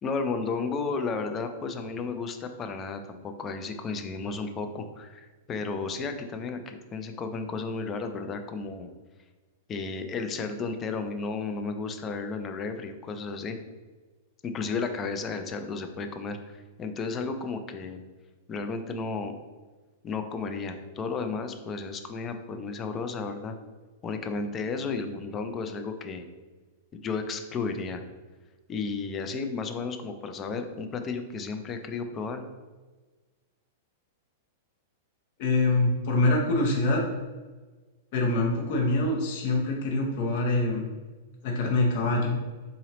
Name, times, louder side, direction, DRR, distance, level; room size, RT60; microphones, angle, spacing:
voice 1, 0.0-8.9 9.7-13.6 14.4-18.0 18.5-19.4 20.0-23.5 24.0-26.3 26.9-28.0 28.7-32.4, left 4 dB, 20° left, 7 dB, 0.3 m, -33 dB
voice 2, 35.4-37.0 38.1-40.9 41.4-42.3, left 2 dB, 50° left, -1 dB, 0.7 m, -25 dB
3.9 x 2.9 x 2.9 m, 1.3 s
supercardioid pair, 155°, 0 cm